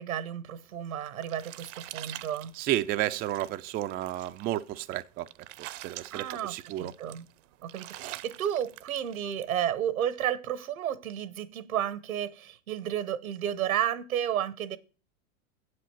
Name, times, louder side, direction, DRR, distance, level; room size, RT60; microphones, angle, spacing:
voice 1, 0.0-2.5 6.1-7.3 7.6-14.8, right 10 dB, 85° right, 0.9 m, -32 dB
sound 1, 0.7-9.6, right 16 dB, 60° right, 0.7 m, -45 dB
voice 2, 2.6-5.3 5.6-6.9, right 14 dB, 25° right, 0.3 m, -32 dB
7.8 x 7.7 x 4.5 m
hypercardioid pair, 95°, 41 cm